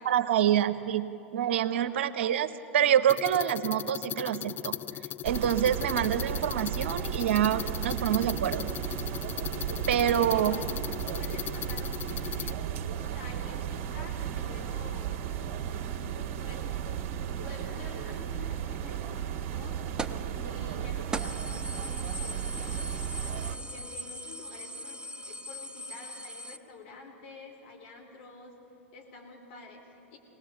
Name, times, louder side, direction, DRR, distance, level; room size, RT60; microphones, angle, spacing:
voice 1, 0.0-4.8 5.2-8.7 9.9-10.6, right 10 dB, 70° right, 11 dB, 0.9 m, -26 dB
voice 2, 1.9-2.7 9.9-10.8 11.1-12.6 13.0-15.1 15.8-16.7 17.4-19.8 20.4-22.9 23.4-25.0 25.3-28.5 28.9-30.2, left 3 dB, 60° left, 2 dB, 4.1 m, -49 dB
sound 1, 3.1-12.5, left 11 dB, 30° left, 0.4 m, -38 dB
sound 2, 5.2-23.6, right 9 dB, 50° right, 1.5 m, -35 dB
sound 3, 20.0-20.3 20.7-20.8 21.1-26.6, right 1 dB, 10° right, 0.9 m, -39 dB
22.5 x 19.0 x 7.2 m, 2.9 s
hypercardioid pair, 95°, 7 cm